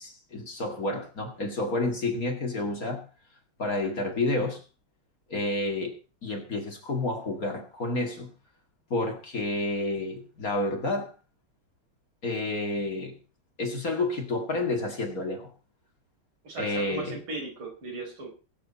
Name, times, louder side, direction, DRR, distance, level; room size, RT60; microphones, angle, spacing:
voice 1, 0.0-3.1 3.6-4.6 5.3-8.3 8.9-11.1 12.2-13.2 13.6-15.5 16.6-17.1, left 2 dB, 40° left, 2.6 m, -30 dB
voice 2, 16.4-18.3, right 3 dB, 75° right, 5.2 m, -37 dB
21.5 x 7.9 x 4.2 m
omnidirectional pair, 2.3 m